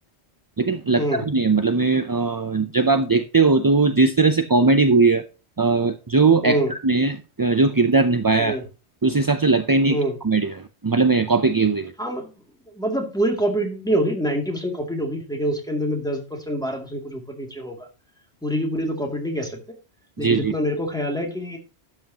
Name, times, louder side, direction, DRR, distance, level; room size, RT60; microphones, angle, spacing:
voice 1, 0.6-5.2 5.6-6.6 6.8-8.6 9.0-10.0 10.2-11.9 20.2-20.5, right 3 dB, 30° right, 8 dB, 0.4 m, -19 dB
voice 2, 12.0-12.3 12.7-17.9 18.4-19.8 20.2-21.6, equal, 5° left, 1 dB, 2.3 m, -25 dB
12.5 x 7.8 x 2.9 m, 0.31 s
omnidirectional pair, 1.1 m